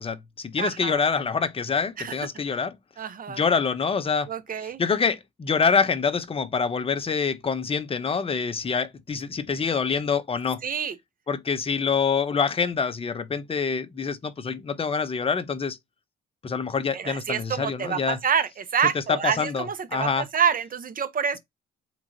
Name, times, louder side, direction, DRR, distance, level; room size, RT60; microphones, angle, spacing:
voice 1, 0.0-2.7 3.3-4.3 4.8-10.6 11.3-15.8 16.4-18.2 18.9-19.7 19.9-20.3, left 5 dB, 30° left, 0.7 m, -26 dB
voice 2, 0.6-1.0 2.0-2.1 3.0-3.4 4.3-4.8 10.6-11.0 16.9-21.4, right 7 dB, 45° right, 0.7 m, -27 dB
3.7 x 3.0 x 2.7 m
cardioid pair, 90°, 20 cm